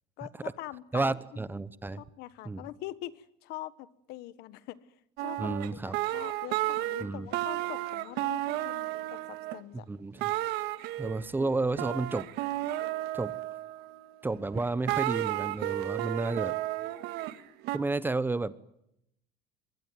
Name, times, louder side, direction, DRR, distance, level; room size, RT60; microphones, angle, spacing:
voice 1, 0.2-1.2 1.9-4.8 5.2-5.6 5.8-9.9, left 15 dB, 70° left, 16 dB, 1.4 m, -43 dB
voice 2, 0.9-2.0 2.4-2.6 5.4-6.0 7.0-7.3 9.9-10.3 11.0-12.3 13.1-13.4 14.2-16.6 17.7-18.5, right 3 dB, 10° right, 16 dB, 0.9 m, -31 dB
sound 1, 5.2-7.0 7.3-9.6 10.2-14.1 14.5-17.8, right 16 dB, 75° right, 1.9 m, -33 dB
24.0 x 21.5 x 9.3 m, 0.80 s
cardioid pair, 130°, 17 cm